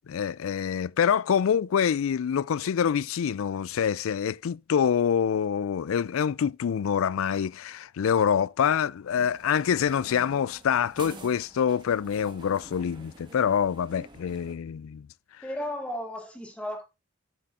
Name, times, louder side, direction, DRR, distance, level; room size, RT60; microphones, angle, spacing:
voice 1, 0.1-15.1, left 7 dB, 75° left, 0.4 m, -26 dB
sound 1, 9.2-14.5, right 2 dB, 20° right, 1.6 m, -48 dB
voice 2, 15.4-16.8, left 1 dB, 5° left, 2.4 m, -34 dB
11.0 x 7.6 x 2.5 m
head